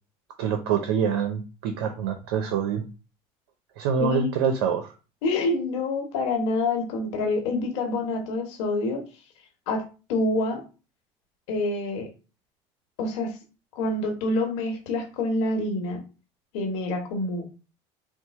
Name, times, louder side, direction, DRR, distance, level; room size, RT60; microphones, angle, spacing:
voice 1, 0.4-2.8 3.8-4.9, right 7 dB, 85° right, 6 dB, 0.6 m, -25 dB
voice 2, 5.2-9.0 9.7-9.8 10.1-10.6 11.5-12.1 13.0-13.4 13.7-16.0 16.5-17.5, left 2 dB, 85° left, 4 dB, 1.2 m, -27 dB
4.5 x 2.1 x 4.1 m, 0.33 s
supercardioid pair, 95°, 14 cm